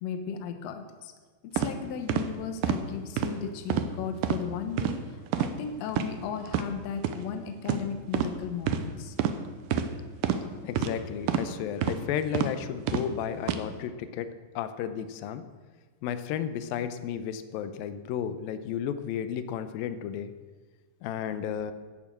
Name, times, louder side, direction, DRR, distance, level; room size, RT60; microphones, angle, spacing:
voice 1, 0.0-1.1 1.5-5.0 5.4-9.2, left 6 dB, 60° left, 8 dB, 1.9 m, -35 dB
sound 1, 1.6-1.7 2.1-2.3 2.6-2.8 3.2-3.3 3.7-3.9 4.2-4.4 4.8-5.0 5.3-5.5 5.9-6.1 6.5-6.7 7.0-7.2 7.7-7.8 8.1-8.3 8.7-8.8 9.2-9.4 9.7-9.9 10.2-10.4 10.8-10.9 11.3-11.5 11.8-12.0 12.3-12.5 12.9-13.1 13.4-13.6, right 9 dB, 80° right, 2.5 m, -27 dB
voice 2, 10.6-14.3 14.6-15.4 16.0-20.3 21.0-21.7, left 9 dB, 90° left, 11 dB, 2.5 m, -33 dB
11.5 x 10.5 x 7.5 m, 1.4 s
omnidirectional pair, 4.0 m